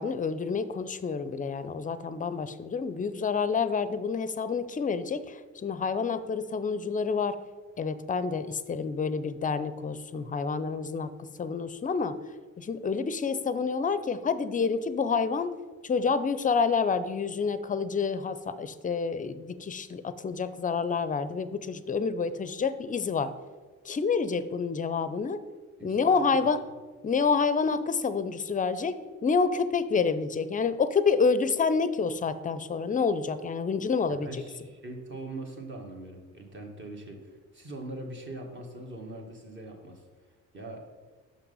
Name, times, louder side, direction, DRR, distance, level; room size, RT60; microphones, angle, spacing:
voice 1, 0.0-7.4 7.8-11.1 11.4-12.2 12.6-15.5 15.8-23.3 23.8-25.4 25.8-26.6 27.0-34.4, left 5 dB, 25° left, 13 dB, 0.5 m, -28 dB
voice 2, 25.8-26.4 34.2-40.0 40.5-40.8, right 2 dB, 40° right, 1 dB, 1.6 m, -42 dB
5.8 x 5.7 x 5.5 m, 1.4 s
cardioid pair, 90°, 30 cm